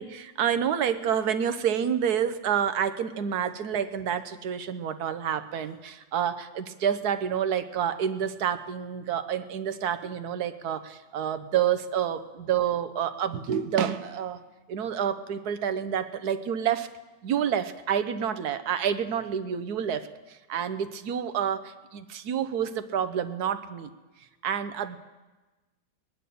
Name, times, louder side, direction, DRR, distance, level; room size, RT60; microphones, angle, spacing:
voice 1, 0.0-14.4 14.7-16.9 17.2-23.9 24.4-25.0, right 8 dB, 65° right, 11 dB, 1.3 m, -28 dB
20.0 x 10.0 x 6.8 m, 1.2 s
omnidirectional pair, 1.9 m